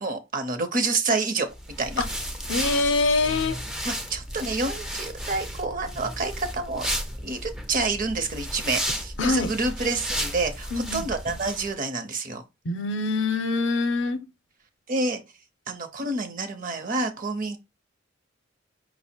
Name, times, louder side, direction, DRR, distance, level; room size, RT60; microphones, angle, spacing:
voice 1, 0.0-1.5 1.8-2.0 3.8-6.9 7.2-12.4 14.9-15.2 15.7-17.6, right 3 dB, 45° right, 0.7 m, -28 dB
sound 1, 1.5-11.7, equal, 5° right, 0.4 m, -33 dB
voice 2, 2.5-3.6 9.2-9.5 10.7-11.0 12.7-14.2, left 3 dB, 65° left, 0.6 m, -24 dB
5.3 x 2.0 x 4.3 m
head